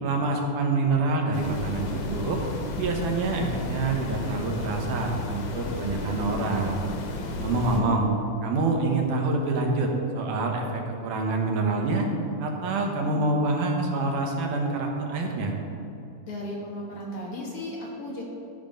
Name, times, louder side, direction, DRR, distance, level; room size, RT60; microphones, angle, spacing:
voice 1, 0.0-2.4 2.8-6.8 7.4-8.1 8.4-12.1 12.4-15.5, right 3 dB, 85° right, 2 dB, 2.6 m, -26 dB
sound 1, 1.3-7.8, left 3 dB, 85° left, 2.6 m, -33 dB
voice 2, 16.2-18.2, left 1 dB, 55° left, -3 dB, 2.0 m, -35 dB
12.0 x 5.8 x 5.1 m, 2.7 s
omnidirectional pair, 3.6 m